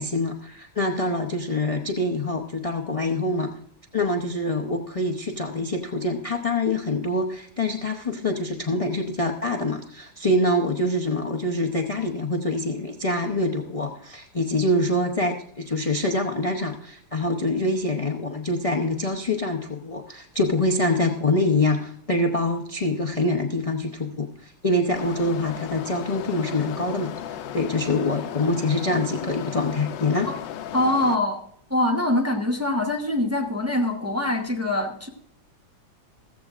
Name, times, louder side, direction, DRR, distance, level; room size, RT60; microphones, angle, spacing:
voice 1, 0.0-3.5 3.9-30.3, left 2 dB, 60° left, 3 dB, 0.3 m, -25 dB
sound 1, 24.9-31.1, left 10 dB, 85° left, 1.3 m, -35 dB
voice 2, 30.7-31.4 31.7-35.1, left 1 dB, 10° right, 1 dB, 0.7 m, -24 dB
15.0 x 14.5 x 2.5 m, 0.66 s
omnidirectional pair, 1.9 m